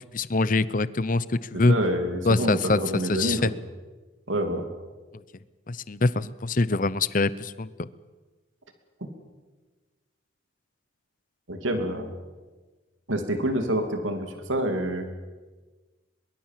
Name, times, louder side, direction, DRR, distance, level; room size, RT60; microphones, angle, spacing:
voice 1, 0.1-1.7 2.2-3.5 5.7-7.9, left 3 dB, 40° left, 17 dB, 0.7 m, -24 dB
voice 2, 1.5-3.5 4.3-4.6 11.5-12.1 13.1-15.1, right 1 dB, 75° right, 6 dB, 2.8 m, -27 dB
22.5 x 22.0 x 7.6 m, 1.3 s
head